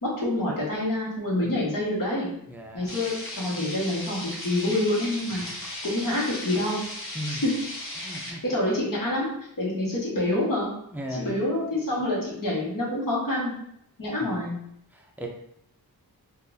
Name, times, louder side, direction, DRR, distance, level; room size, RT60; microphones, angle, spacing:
voice 1, 0.0-2.3 2.7-6.8 7.1-7.5 8.2-9.3 9.6-10.7 11.1-13.5 14.0-14.6, left 1 dB, 60° left, -6 dB, 1.4 m, -27 dB
voice 2, 2.5-2.9 7.1-7.4 8.0-8.4 10.9-11.3 14.2-14.4 14.9-15.3, equal, 5° right, 1 dB, 0.5 m, -36 dB
sound 1, 2.9-8.3, left 1 dB, 35° left, 0.9 m, -36 dB
3.8 x 2.4 x 2.6 m, 0.75 s
wide cardioid pair, 100°, 38 cm